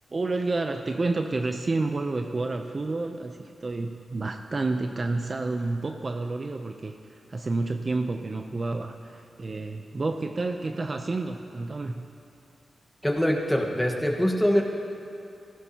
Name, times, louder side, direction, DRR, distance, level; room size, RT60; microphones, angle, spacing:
voice 1, 0.1-12.0, right 3 dB, 35° right, 5 dB, 0.5 m, -30 dB
voice 2, 13.0-14.6, equal, 5° left, 0 dB, 1.3 m, -23 dB
17.0 x 15.5 x 2.9 m, 2.6 s
wide cardioid pair, 105°, 0 cm